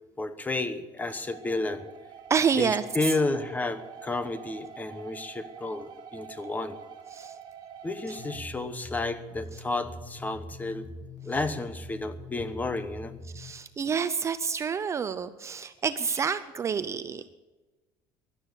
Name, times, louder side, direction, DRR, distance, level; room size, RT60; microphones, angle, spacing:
voice 1, 0.2-1.9 2.6-6.8 7.8-10.9 11.2-13.1, left 2 dB, 15° left, 12 dB, 1.0 m, -31 dB
sound 1, 1.1-8.4, right 8 dB, 45° right, 3.0 m, -46 dB
voice 2, 2.3-2.8 7.1-7.3 13.3-17.3, right 6 dB, 25° right, 12 dB, 0.5 m, -28 dB
sound 2, 8.2-13.5, left 1 dB, 35° left, 1.7 m, -43 dB
17.0 x 11.5 x 6.8 m, 1.2 s
cardioid pair, 135°, 11 cm